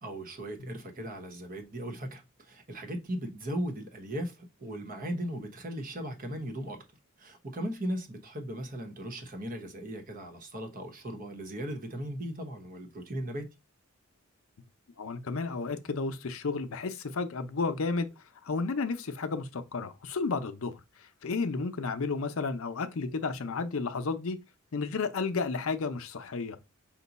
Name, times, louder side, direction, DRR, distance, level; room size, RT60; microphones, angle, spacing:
voice 1, 0.0-6.8 7.2-13.5, equal, 40° right, 1.0 m, -37 dB
voice 2, 15.0-18.1 18.4-24.4 24.7-26.6, left 4 dB, 70° left, 0.6 m, -32 dB
5.8 x 2.2 x 4.0 m
head